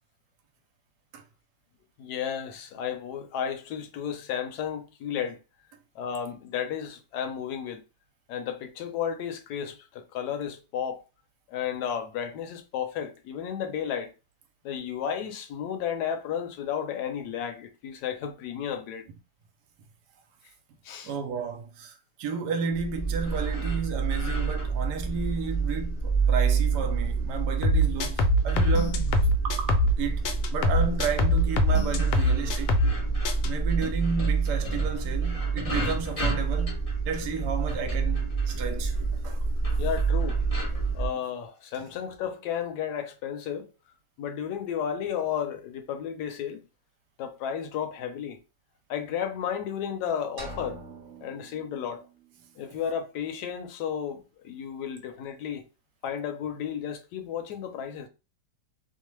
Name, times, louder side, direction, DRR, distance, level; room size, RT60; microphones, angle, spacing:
voice 1, 2.0-5.4 5.9-7.8 8.3-11.0 11.5-14.1 14.6-19.1 20.8-21.1 39.8-40.4 40.9-43.7 44.2-46.6 47.2-48.4 48.9-50.8 51.2-52.1 52.6-55.7 56.0-58.1, left 8 dB, 70° left, 1.1 m, -33 dB
voice 2, 21.0-29.1 29.4-32.8 33.4-39.4, right 5 dB, 75° right, 1.1 m, -32 dB
sound 1, 22.7-41.1, right 4 dB, 55° left, 0.4 m, -28 dB
sound 2, 27.6-30.0 30.2-33.0 33.2-33.5, left 1 dB, 90° left, 1.3 m, -23 dB
sound 3, 50.4-52.3, right 1 dB, 40° right, 1.1 m, -44 dB
3.0 x 2.0 x 3.0 m
omnidirectional pair, 2.0 m